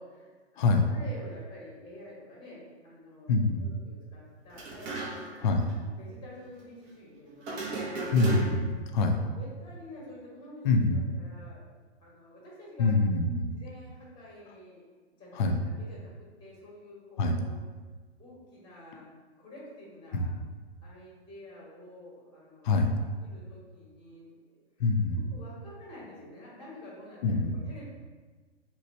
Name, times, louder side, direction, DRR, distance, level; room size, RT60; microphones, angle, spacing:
voice 1, 0.0-3.3 3.6-5.5 5.8-8.2 8.9-11.6 12.0-12.9 13.5-14.8 15.1-17.6 18.2-20.3 20.8-22.9 23.2-24.6 25.1-27.8, left 1 dB, 15° left, -5 dB, 0.9 m, -49 dB
voice 2, 3.3-3.6 5.4-5.6 8.1-9.2 10.6-11.0 12.8-13.5 15.4-15.6 17.2-17.4 20.1-20.3 22.6-23.0 24.8-25.2 27.2-27.6, left 3 dB, 45° left, 4 dB, 0.4 m, -25 dB
sound 1, 4.5-5.4 5.7-5.8 7.4-8.8, right 2 dB, 20° right, 0.4 m, -35 dB
2.9 x 2.2 x 4.0 m, 1.4 s
figure-of-eight pair, 115°, 34 cm